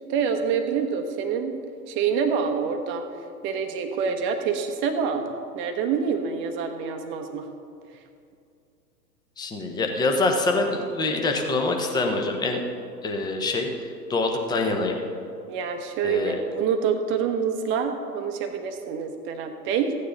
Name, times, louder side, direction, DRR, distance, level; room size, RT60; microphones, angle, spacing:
voice 1, 0.1-1.6 1.9-3.0 3.4-7.5 15.5-20.0, right 6 dB, 25° right, 5 dB, 0.9 m, -26 dB
voice 2, 9.4-12.6 13.0-15.0 16.0-16.4, left 2 dB, 10° left, 3 dB, 0.8 m, -25 dB
14.5 x 9.5 x 3.9 m, 2.4 s
figure-of-eight pair, 115°, 50 cm